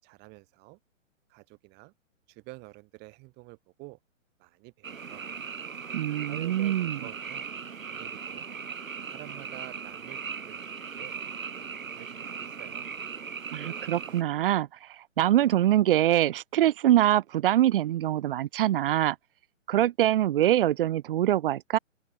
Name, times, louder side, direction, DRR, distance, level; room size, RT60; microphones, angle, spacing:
voice 1, 0.0-0.8 1.3-1.9 2.3-4.0 4.4-5.3 6.2-7.5 7.9-8.5 9.1-11.2 11.6-12.9, right 25 dB, 25° right, 7.5 m, -49 dB
Frog, 4.8-14.2, right 6 dB, 85° right, 4.3 m, -38 dB
voice 2, 5.9-7.0 13.5-19.1 19.7-21.8, right 12 dB, 45° right, 1.7 m, -24 dB
open air
hypercardioid pair, 150°, 39 cm